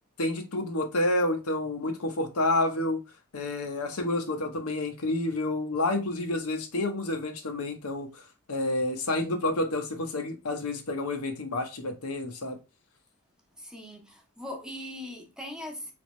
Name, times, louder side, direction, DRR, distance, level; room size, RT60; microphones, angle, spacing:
voice 1, 0.2-3.0 3.3-8.2 8.5-12.6, left 2 dB, 90° left, 0.9 m, -29 dB
voice 2, 13.6-15.9, left 1 dB, 5° right, 0.9 m, -40 dB
4.1 x 3.5 x 3.1 m
head